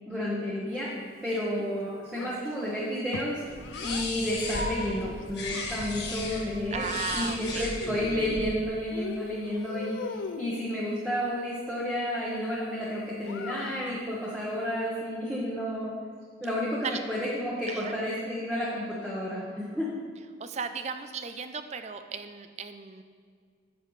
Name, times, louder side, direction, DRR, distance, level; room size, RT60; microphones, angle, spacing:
voice 1, 0.1-0.9 1.2-3.4 3.8-16.0 16.4-19.9, equal, 5° right, -8 dB, 1.2 m, -31 dB
voice 2, 1.3-1.7 6.7-7.7 16.8-17.0 17.7-17.9 20.4-23.0, right 5 dB, 35° right, 9 dB, 0.4 m, -36 dB
Child speech kid speaking, 2.1-4.1 5.0-6.2 7.4-8.6 8.9-10.7 13.2-14.1, left 4 dB, 80° left, 0.5 m, -40 dB
sound 1, 3.4-8.4, left 2 dB, 55° left, 1.6 m, -35 dB
10.0 x 7.8 x 3.2 m, 2.1 s
head